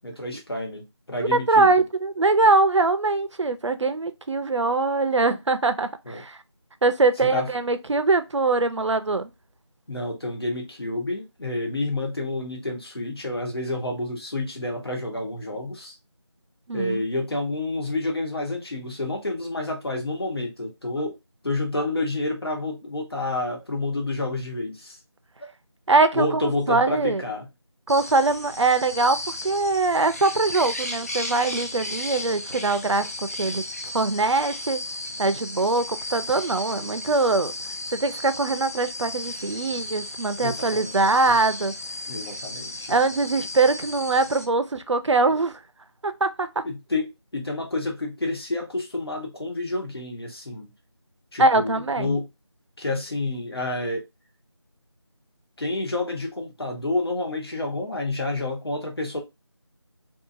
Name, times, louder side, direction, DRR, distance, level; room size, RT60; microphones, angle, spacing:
voice 1, 0.0-1.7 6.1-6.2 7.3-7.5 9.9-15.9 16.7-21.2 21.4-25.0 26.1-27.5 40.4-41.0 41.3-41.4 42.1-42.9 46.6-50.7 51.3-52.3 52.8-54.0 55.6-59.2, left 2 dB, 55° left, 1.1 m, -29 dB
voice 2, 1.3-6.4 6.8-9.3 16.7-17.0 25.9-27.2 27.9-33.1 33.4-33.6 33.9-34.8 35.2-37.5 37.9-41.7 42.9-45.6 46.0-46.5 51.4-52.2, right 3 dB, 80° right, 0.5 m, -22 dB
sound 1, 27.9-44.5, left 1 dB, 30° left, 0.5 m, -35 dB
2.8 x 2.3 x 2.5 m
figure-of-eight pair, 170°, 15 cm